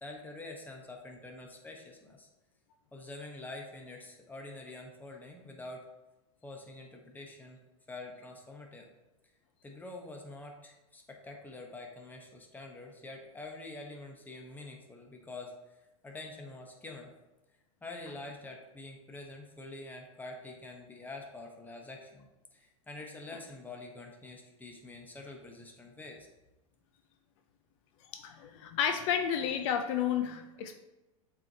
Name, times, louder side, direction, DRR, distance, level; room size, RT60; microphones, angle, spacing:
voice 1, 0.0-2.3 2.9-5.9 6.4-7.6 7.9-8.9 9.6-15.8 16.0-17.1 17.8-26.3, left 2 dB, 10° left, 2 dB, 1.1 m, -46 dB
voice 2, 28.1-30.8, left 8 dB, 60° left, 6 dB, 0.6 m, -31 dB
7.5 x 4.5 x 2.9 m, 1.0 s
hypercardioid pair, 120°, 18 cm